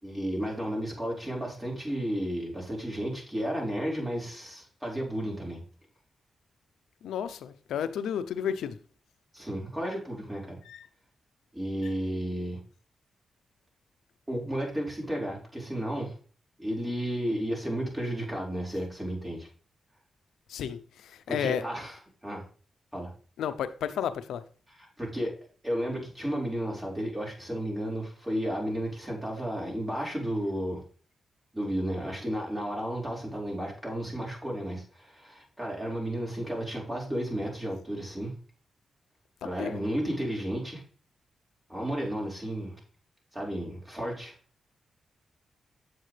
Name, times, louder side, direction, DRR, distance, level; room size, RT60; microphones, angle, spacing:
voice 1, 0.0-5.6 9.3-10.6 11.5-12.6 14.3-16.1 16.6-19.5 21.3-22.4 22.9-23.1 24.7-25.3 25.6-30.8 31.5-38.3 39.4-40.8 41.7-42.8 43.3-44.3, equal, 15° right, 4.9 m, -33 dB
voice 2, 7.0-8.7 10.7-10.8 20.5-20.8 21.3-21.6 23.4-24.4 39.6-39.8, left 9 dB, 90° left, 0.6 m, -31 dB
8.8 x 7.5 x 3.3 m
cardioid pair, 60°, 0 cm